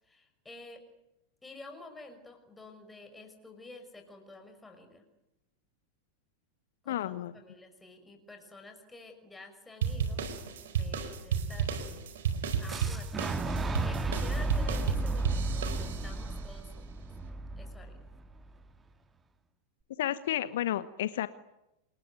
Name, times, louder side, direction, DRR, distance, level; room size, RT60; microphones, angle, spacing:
voice 1, 0.0-0.8 1.4-5.0 6.8-10.2 10.7-12.1 12.6-17.0 17.6-18.0, left 2 dB, 10° left, 5 dB, 5.9 m, -50 dB
voice 2, 6.9-7.3 20.0-21.3, left 12 dB, 55° left, 15 dB, 1.0 m, -31 dB
sound 1, 9.8-16.3, right 7 dB, 60° right, 4.4 m, -33 dB
Fire / Explosion, 12.7-18.6, right 2 dB, 15° right, 2.5 m, -34 dB
28.0 x 21.5 x 9.5 m, 0.91 s
figure-of-eight pair, 90°, 0 cm